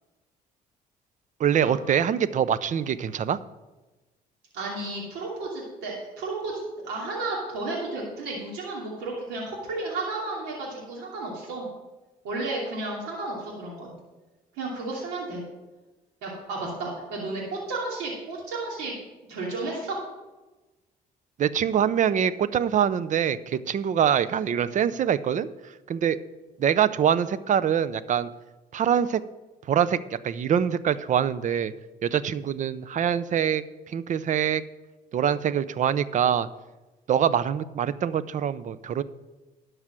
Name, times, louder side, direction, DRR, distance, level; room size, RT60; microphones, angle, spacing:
voice 1, 1.4-3.4 21.4-25.5 25.9-26.2 26.6-28.3 28.7-29.2 29.7-30.0 30.2-31.7 32.0-34.6 35.1-36.5 37.1-39.0, right 8 dB, 50° right, 16 dB, 0.6 m, -24 dB
voice 2, 4.5-11.7 12.2-13.9 14.5-15.4 16.2-18.9 19.3-20.0, right 2 dB, 85° right, -4 dB, 2.8 m, -32 dB
12.0 x 4.9 x 7.6 m, 1.1 s
supercardioid pair, 85°, 17 cm